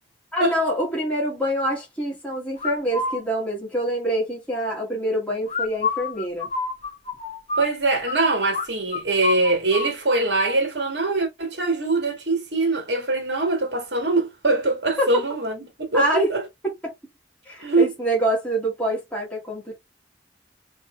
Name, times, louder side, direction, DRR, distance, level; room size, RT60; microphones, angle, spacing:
voice 1, 0.3-6.5 15.0-15.1 15.9-16.3 16.8-16.9 17.4-19.7, right 1 dB, 10° left, 1.9 m, -25 dB
sound 1, 2.6-3.2 5.5-8.2 8.5-8.7 8.9-9.9, left 4 dB, 35° left, 1.2 m, -27 dB
voice 2, 7.6-16.4 17.6-17.9, right 2 dB, 70° right, 1.8 m, -23 dB
4.0 x 3.2 x 3.2 m
head